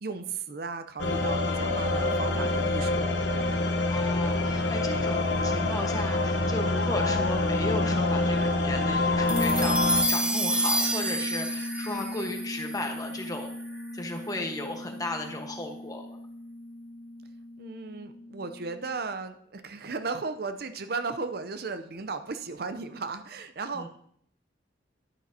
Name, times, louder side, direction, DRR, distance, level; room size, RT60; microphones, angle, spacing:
voice 1, 0.0-3.6 17.6-23.9, right 4 dB, 55° right, 9 dB, 0.6 m, -35 dB
sound 1, 1.0-10.0, left 2 dB, 75° left, 1.0 m, -26 dB
voice 2, 3.9-9.8 10.1-16.2 23.7-23.9, left 2 dB, 20° left, 3 dB, 1.2 m, -35 dB
Bass guitar, 9.3-19.0, left 1 dB, 45° left, 0.8 m, -36 dB
sound 2, 9.3-13.8, right 1 dB, 5° right, 0.8 m, -30 dB
11.0 x 10.0 x 2.8 m, 0.66 s
head